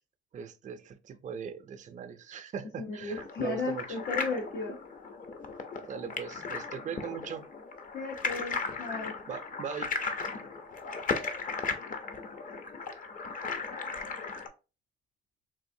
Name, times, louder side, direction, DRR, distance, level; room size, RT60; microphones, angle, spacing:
voice 1, 0.3-4.0 5.9-7.5 9.3-9.9, right 7 dB, 40° right, 0.4 m, -40 dB
voice 2, 2.8-4.8 7.9-9.2, left 4 dB, 80° left, 0.8 m, -35 dB
sound 1, 3.1-14.5, left 4 dB, 40° left, 0.6 m, -36 dB
3.7 x 2.5 x 2.6 m
cardioid pair, 90°, 20 cm